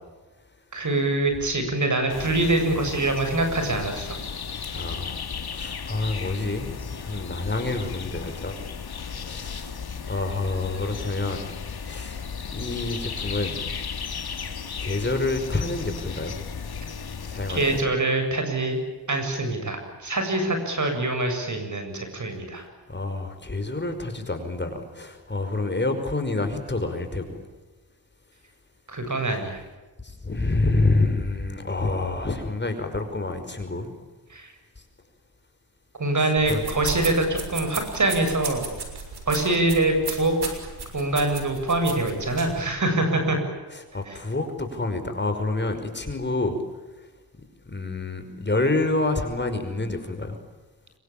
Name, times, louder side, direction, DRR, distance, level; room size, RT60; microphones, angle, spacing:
voice 1, 0.7-4.2 17.5-18.8 19.1-22.7 28.9-29.6 34.3-34.5 36.0-38.7 39.3-40.3 40.9-43.4 44.1-44.2, right 2 dB, 50° right, 6 dB, 7.6 m, -24 dB
sound 1, 2.1-17.8, left 6 dB, 70° left, 2.8 m, -35 dB
voice 2, 4.7-5.2 5.5-8.6 9.0-9.8 10.1-11.4 11.8-12.2 12.5-13.6 14.8-16.4 17.2-17.8 22.9-27.4 30.0-33.9 36.2-36.6 43.7-46.6 47.7-50.4, left 2 dB, 25° left, 6 dB, 5.6 m, -28 dB
sound 2, 36.4-42.6, right 4 dB, 75° right, 6.4 m, -35 dB
26.5 x 24.5 x 8.8 m, 1.2 s
cardioid pair, 75°, 39 cm